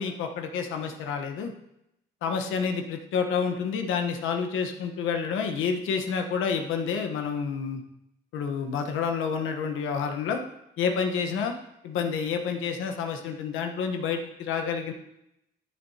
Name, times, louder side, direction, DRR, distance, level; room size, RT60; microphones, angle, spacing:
voice 1, 0.0-1.5 2.2-7.8 8.3-10.4 10.8-11.5 11.8-14.9, left 6 dB, 85° left, 4 dB, 1.1 m, -29 dB
13.0 x 7.3 x 2.8 m, 0.84 s
cardioid pair, 90°, 20 cm